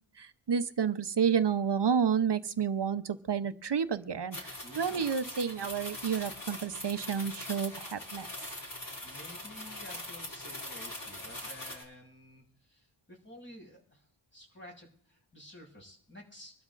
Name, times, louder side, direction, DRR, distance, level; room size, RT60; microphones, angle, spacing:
voice 1, 0.2-8.3, right 7 dB, 55° right, 11 dB, 0.9 m, -30 dB
sound 1, 4.3-11.8, left 1 dB, 40° left, 4.3 m, -42 dB
voice 2, 4.6-5.1 9.0-16.5, equal, 25° left, -2 dB, 7.1 m, -51 dB
25.5 x 12.0 x 2.5 m, 0.63 s
wide cardioid pair, 65°, 48 cm